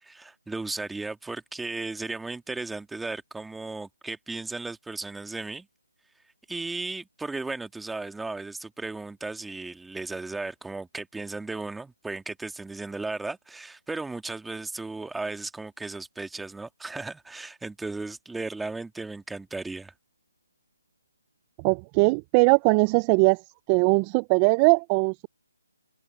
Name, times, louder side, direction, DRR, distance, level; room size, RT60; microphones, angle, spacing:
voice 1, 0.0-5.7 6.5-19.9, right 3 dB, 5° right, 1.7 m, -35 dB
voice 2, 21.6-23.4 23.7-25.3, right 31 dB, 20° right, 0.5 m, -20 dB
open air
figure-of-eight pair, 155°, 0 cm